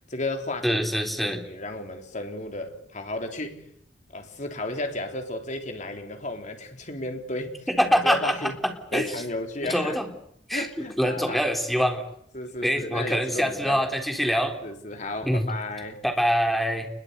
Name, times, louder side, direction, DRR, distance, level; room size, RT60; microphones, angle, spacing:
voice 1, 0.1-0.8 1.2-3.6 4.1-7.6 8.0-8.6 8.9-10.0 10.5-11.4 12.3-13.9 14.6-16.0, left 2 dB, 40° left, 4 dB, 3.8 m, -33 dB
voice 2, 0.6-1.4 7.7-9.1 9.6-10.1 10.5-12.0 12.6-14.5 15.3-15.5 16.0-16.9, equal, ahead, 4 dB, 3.8 m, -25 dB
28.5 x 22.0 x 8.3 m, 0.68 s
head